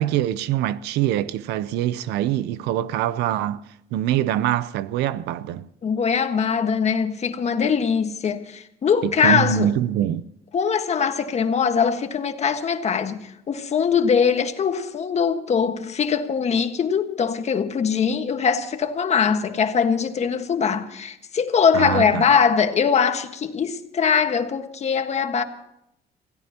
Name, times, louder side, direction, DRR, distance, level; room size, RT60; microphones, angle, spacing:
voice 1, 0.0-3.6 3.9-5.7 9.0-10.2 21.7-22.2, right 12 dB, 90° right, 0.7 m, -24 dB
voice 2, 5.8-9.7 10.5-25.4, left 6 dB, 40° left, 1.6 m, -22 dB
27.0 x 17.0 x 3.0 m
cardioid pair, 110°, 17 cm